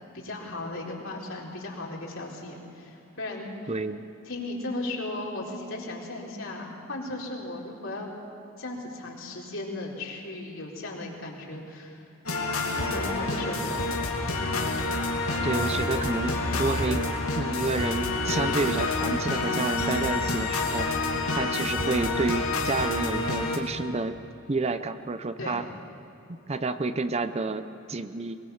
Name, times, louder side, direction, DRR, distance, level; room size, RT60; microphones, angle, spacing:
voice 1, 0.1-3.5 4.3-8.1 8.6-12.0 12.7-13.8 14.3-14.6 25.4-25.6, left 2 dB, 65° left, -2 dB, 4.2 m, -36 dB
voice 2, 3.7-4.0 15.4-17.1 17.4-20.9 21.3-24.2 24.5-25.6 26.5-28.4, right 3 dB, 30° right, 11 dB, 0.6 m, -29 dB
sound 1, 12.3-23.6, left 2 dB, 80° left, 2.9 m, -28 dB
22.5 x 22.5 x 7.1 m, 2.9 s
head